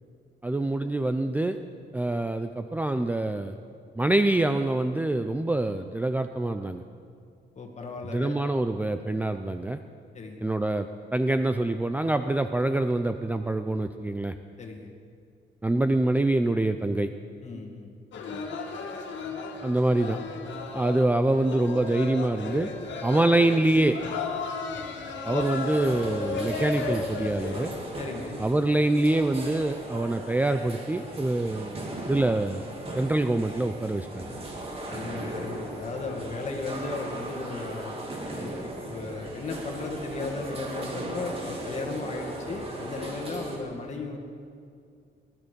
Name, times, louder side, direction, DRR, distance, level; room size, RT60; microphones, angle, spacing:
voice 1, 0.4-1.6 1.9-3.6 4.0-6.8 8.1-9.8 10.4-14.3 15.6-17.1 19.6-20.2 20.7-22.7 23.0-24.0 25.2-27.7 28.4-31.8 32.1-32.7 32.9-34.3, right 2 dB, 10° right, 8 dB, 0.5 m, -25 dB
voice 2, 7.6-8.4 10.1-10.4 14.6-14.9 17.4-17.9 18.2-18.4 25.3-25.5 28.0-28.4 34.9-37.9 38.4-38.5 38.8-44.2, left 3 dB, 35° left, 2 dB, 2.2 m, -35 dB
sound 1, 18.1-27.8, left 4 dB, 75° left, 2.0 m, -34 dB
sound 2, 25.4-43.6, right 1 dB, 30° right, 2.7 m, -38 dB
19.5 x 12.5 x 5.2 m, 2.4 s
cardioid pair, 135°, 19 cm